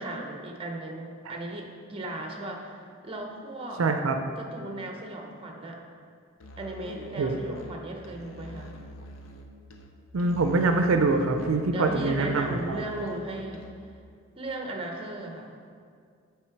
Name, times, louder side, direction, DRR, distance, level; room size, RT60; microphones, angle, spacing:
voice 1, 0.0-3.8 4.4-5.8 6.6-8.8 11.7-13.9 14.3-15.5, right 1 dB, 25° right, 2 dB, 0.7 m, -36 dB
voice 2, 3.8-4.2 7.2-7.4 10.1-12.8, right 3 dB, 80° right, 6 dB, 0.4 m, -24 dB
Musical instrument, 6.4-14.0, left 1 dB, 75° left, 0.6 m, -46 dB
8.1 x 3.4 x 4.5 m, 2.2 s
head